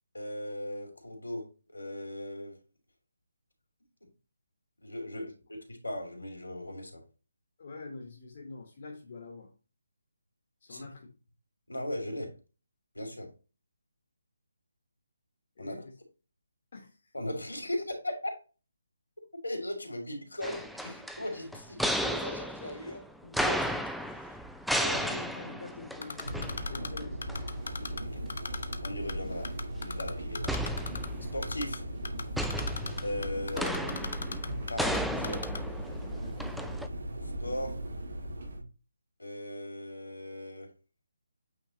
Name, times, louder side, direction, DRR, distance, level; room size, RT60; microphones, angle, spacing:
voice 1, 0.1-2.5 4.8-7.0 10.7-10.9 11.7-12.3 12.9-13.3 15.6-15.7 17.1-18.3 19.4-23.8 24.1-24.3 24.8-25.0 26.8-26.9 27.7-28.2 28.8-30.5 31.3-31.8 33.0-34.2 34.7-35.4 37.4-37.7 39.2-40.7, left 1 dB, 85° left, 2.9 m, -38 dB
voice 2, 7.6-9.5 10.6-11.2 15.6-16.0 16.7-17.1 22.8-23.0 24.8-27.5 36.0-36.4, left 3 dB, 50° left, 1.3 m, -45 dB
sound 1, 20.4-27.0 27.3-27.4 30.5-31.5 32.4-36.9, equal, ahead, 0.4 m, -34 dB
Typing, 26.0-28.0 28.3-29.1 29.4-31.1 31.4-31.8 32.0-35.0 35.2-35.6, left 4 dB, 65° left, 0.9 m, -37 dB
sound 2, 26.2-38.6, right 1 dB, 60° right, 1.8 m, -38 dB
8.8 x 3.5 x 3.1 m
figure-of-eight pair, 150°, 0 cm